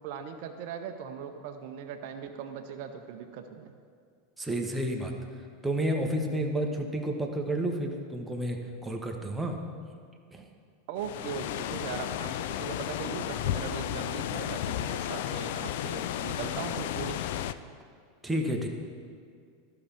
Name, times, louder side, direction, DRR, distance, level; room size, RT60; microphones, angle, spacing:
voice 1, 0.0-3.8 10.9-17.2, right 7 dB, 55° right, 6 dB, 0.6 m, -39 dB
voice 2, 4.4-5.1 5.6-8.6 8.8-9.6 10.3-10.5 18.2-18.7, right 1 dB, 10° right, 2 dB, 1.2 m, -30 dB
sound 1, 11.0-17.5, left 11 dB, 60° left, 0.3 m, -33 dB
14.0 x 5.7 x 3.5 m, 2.2 s
figure-of-eight pair, 85°, 0 cm